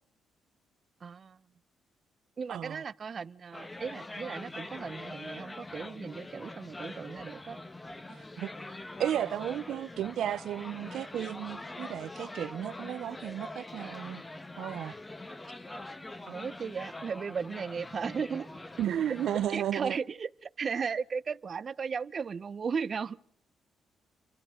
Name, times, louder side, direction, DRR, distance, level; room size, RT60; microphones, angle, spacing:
voice 1, 1.0-1.4 2.4-7.6 16.3-18.5 19.5-23.2, right 6 dB, 45° right, 0.8 m, -36 dB
voice 2, 2.5-2.8 8.1-8.5 9.0-14.2 14.6-14.9 18.8-20.0, right 11 dB, 75° right, 0.8 m, -34 dB
sound 1, 3.5-19.5, left 2 dB, 15° left, 1.4 m, -43 dB
29.5 x 24.5 x 3.8 m
cardioid pair, 90°, 0 cm